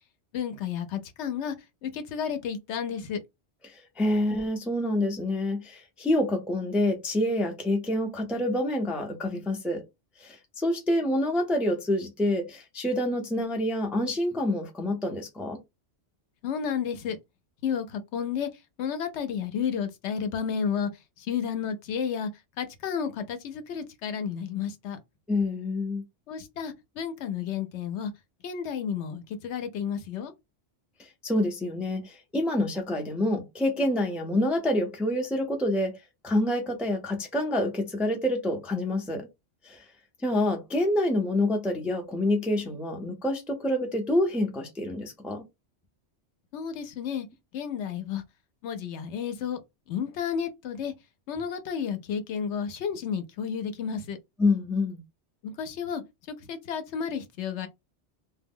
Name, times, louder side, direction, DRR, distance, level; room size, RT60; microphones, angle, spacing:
voice 1, 0.3-1.5 1.8-3.2 16.4-17.2 17.6-18.5 18.8-20.9 21.2-22.3 22.6-25.0 26.3-28.1 28.4-30.3 46.5-47.3 47.5-48.2 48.6-49.6 49.9-50.9 51.3-54.2 55.4-56.0 56.3-57.7, left 7 dB, 75° left, 0.8 m, -31 dB
voice 2, 3.6-9.8 10.2-15.6 25.3-26.0 31.2-39.3 39.6-39.8 40.2-45.4 54.4-55.0, left 1 dB, ahead, 0.4 m, -27 dB
2.1 x 2.1 x 3.5 m
omnidirectional pair, 1.2 m